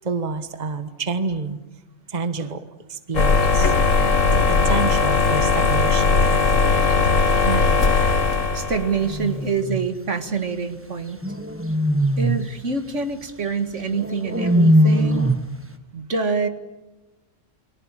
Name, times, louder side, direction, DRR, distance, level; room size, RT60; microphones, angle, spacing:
voice 1, 0.0-1.6 2.1-3.7 4.0-6.4, right 4 dB, 35° right, 10 dB, 1.5 m, -29 dB
sound 1, 3.1-9.1, left 4 dB, 85° left, 2.2 m, -18 dB
voice 2, 7.4-7.9 8.5-11.2 12.2-15.3 15.9-16.5, right 5 dB, 70° right, 8 dB, 2.1 m, -26 dB
sound 2, 9.0-9.9 11.2-12.5 13.9-15.5, equal, 10° right, 1.4 m, -20 dB
30.0 x 23.5 x 7.5 m, 1.1 s
omnidirectional pair, 1.3 m